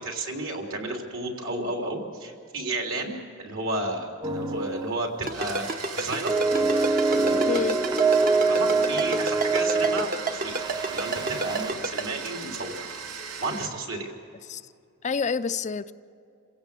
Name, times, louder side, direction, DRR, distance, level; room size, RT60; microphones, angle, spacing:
voice 1, 0.0-3.1 3.4-5.6 5.9-7.7 8.5-10.6 10.9-12.7 13.4-14.1, right 2 dB, 65° right, 3.4 m, -32 dB
sound 1, 4.2-5.0 5.3-5.5 6.3-11.7, right 3 dB, 20° right, 0.7 m, -25 dB
Domestic sounds home sounds, 5.2-13.7, right 5 dB, 90° right, 2.4 m, -38 dB
Ringtone, 5.3-12.0, right 2 dB, 40° right, 1.1 m, -28 dB
voice 2, 7.5-7.8 14.4-14.6 15.0-15.9, left 5 dB, 35° left, 0.4 m, -28 dB
28.0 x 16.5 x 6.8 m
head